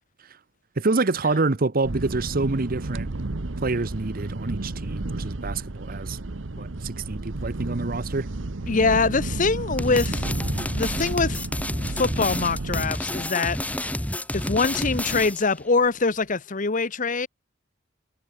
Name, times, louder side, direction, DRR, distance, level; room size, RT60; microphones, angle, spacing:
voice 1, 0.8-3.1 3.6-6.2 6.6-8.3, right 3 dB, 50° right, 0.9 m, -26 dB
sound 1, 1.8-12.9, right 2 dB, 75° right, 1.1 m, -32 dB
voice 2, 8.7-10.3 10.7-11.5 11.9-13.6 14.3-17.3, left 4 dB, 40° left, 1.0 m, -24 dB
sound 2, 9.8-15.5, left 1 dB, 10° left, 3.7 m, -29 dB
head